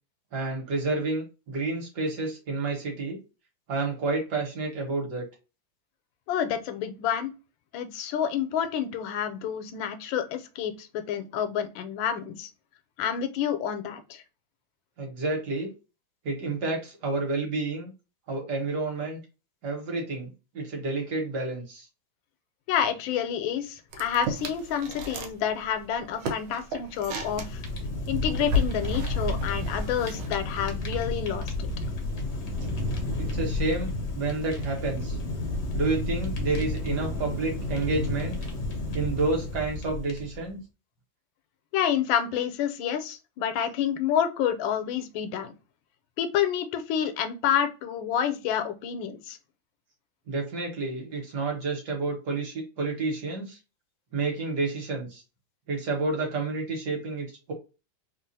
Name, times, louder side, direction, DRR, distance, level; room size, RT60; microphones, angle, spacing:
voice 1, 0.3-3.2 3.7-5.3 15.0-15.7 16.2-17.9 18.3-19.2 19.6-20.3 20.5-21.8 33.2-35.2 35.7-38.4 38.9-40.6 50.3-53.6 54.1-55.2 55.7-57.5, right 3 dB, 60° right, 0 dB, 1.6 m, -30 dB
voice 2, 6.3-7.3 7.7-12.5 13.0-14.2 22.7-27.6 28.1-31.5 41.7-45.5 46.2-49.4, left 9 dB, 85° left, 8 dB, 1.3 m, -28 dB
sound 1, 23.9-25.4 25.6-30.3, left 1 dB, 90° right, 1.4 m, -33 dB
Fire, 26.9-40.5, left 2 dB, 60° left, 0.7 m, -32 dB
3.5 x 2.4 x 2.6 m, 0.30 s
omnidirectional pair, 2.1 m